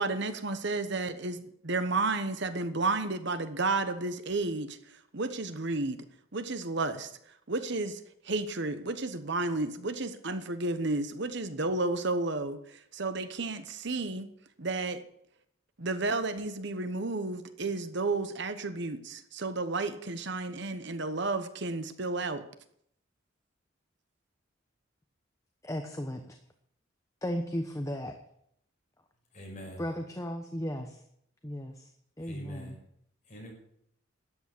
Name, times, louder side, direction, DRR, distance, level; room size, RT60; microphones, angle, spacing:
voice 1, 0.0-4.8 5.1-6.0 6.3-7.1 7.5-14.3 14.6-15.0 15.8-22.4, right 3 dB, 60° right, 1.1 m, -32 dB
voice 2, 25.6-26.4 27.2-28.2 29.8-31.0 31.4-31.9 32.2-32.8, equal, 15° left, 1.0 m, -35 dB
voice 3, 29.3-29.9 32.2-32.8 33.2-33.5, equal, 35° left, 6.6 m, -45 dB
13.0 x 9.1 x 8.5 m
head